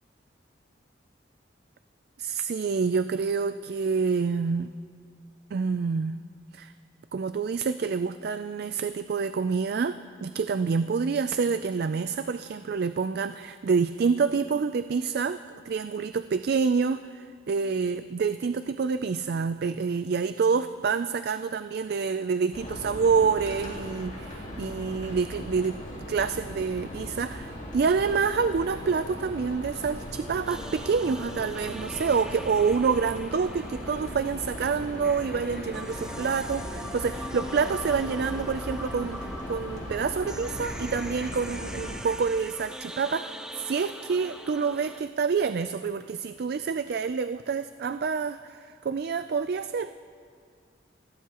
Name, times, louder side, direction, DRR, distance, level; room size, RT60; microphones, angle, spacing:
voice 1, 2.2-4.7 5.5-6.2 6.5-6.7 7.1-25.8 26.1-49.9, right 5 dB, 55° right, 11 dB, 0.4 m, -27 dB
sound 1, 22.5-42.0, equal, 45° left, 4.1 m, -38 dB
sound 2, 30.5-45.0, equal, 5° right, 0.6 m, -42 dB
28.0 x 17.0 x 3.0 m, 2.2 s
head